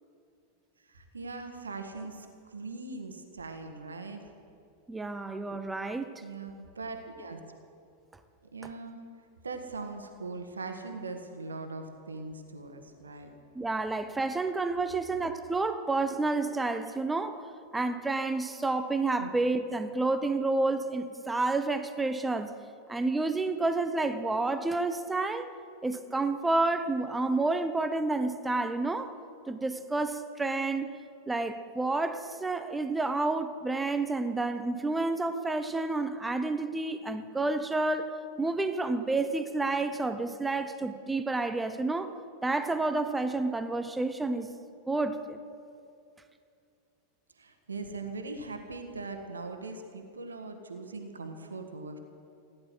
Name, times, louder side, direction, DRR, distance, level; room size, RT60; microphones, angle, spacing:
voice 1, 0.9-4.3 6.2-7.4 8.5-9.0 9.4-13.3 19.2-19.3 47.4-52.0, right 3 dB, 75° right, 5 dB, 1.6 m, -40 dB
voice 2, 4.9-6.2 13.5-17.4 17.7-22.5 22.9-25.5 25.8-29.2 29.5-31.0 31.3-38.1 38.4-42.2 42.4-44.5 44.9-45.4, right 3 dB, 10° right, 10 dB, 0.8 m, -30 dB
16.0 x 11.0 x 7.9 m, 2.4 s
figure-of-eight pair, 90°, 0 cm